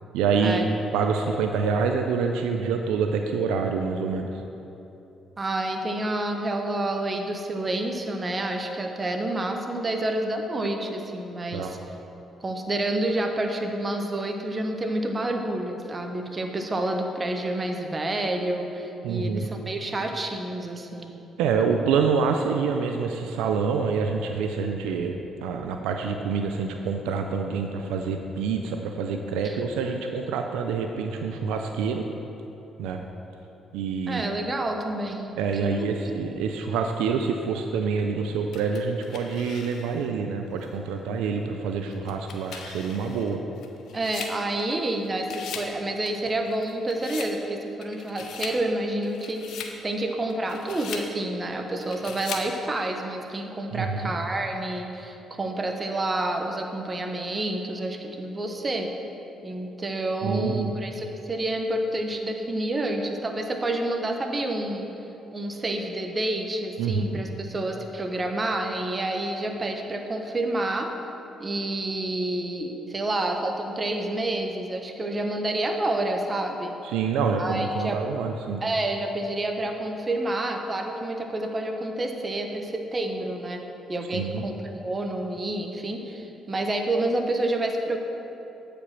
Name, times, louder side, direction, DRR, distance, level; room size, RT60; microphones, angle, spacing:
voice 1, 0.1-0.7 0.9-4.3 11.5-11.7 19.0-19.5 21.4-32.0 32.8-33.0 33.7-34.4 35.4-43.4 53.7-54.1 60.2-60.7 66.8-67.2 76.8-78.6 84.1-84.4, right 5 dB, 85° right, 4 dB, 0.4 m, -26 dB
voice 2, 5.4-11.8 12.4-21.1 29.4-29.6 34.1-35.3 35.6-35.9 43.9-58.9 59.4-64.9 65.3-70.9 71.4-76.7 77.4-78.0 78.6-83.6 83.9-88.0, right 1 dB, 30° right, 4 dB, 1.0 m, -29 dB
sound 1, 38.5-40.1 40.6-40.7 41.9-44.9 45.2-45.7 46.1-47.4 47.8-48.6 49.0-49.8 50.3-51.1 51.8-52.5, left 6 dB, 70° left, 0.7 m, -39 dB
8.1 x 5.1 x 5.8 m, 2.9 s
supercardioid pair, 60°, 0 cm